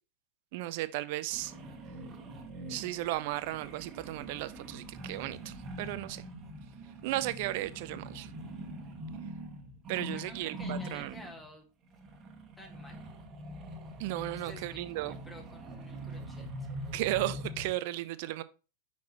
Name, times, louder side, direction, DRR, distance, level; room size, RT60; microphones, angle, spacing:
voice 1, 0.5-1.5 2.7-6.2 7.0-8.3 9.9-11.2 14.0-15.2 16.9-18.4, right 16 dB, 50° right, 0.5 m, -35 dB
sound 1, 1.3-11.5 11.9-17.7, right 1 dB, 30° right, 1.2 m, -43 dB
voice 2, 10.1-11.7 12.6-13.1 14.3-16.7, left 1 dB, 10° left, 1.3 m, -51 dB
5.9 x 5.7 x 2.9 m
figure-of-eight pair, 90°, 0 cm